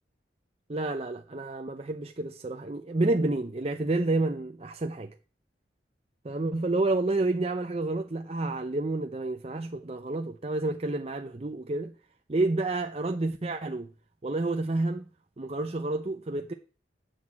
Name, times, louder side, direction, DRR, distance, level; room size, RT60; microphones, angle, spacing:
voice 1, 0.7-5.1 6.2-11.9 12.3-13.9 14.2-15.0 15.4-16.5, right 2 dB, 35° right, 0.7 m, -29 dB
9.4 x 8.1 x 7.5 m
head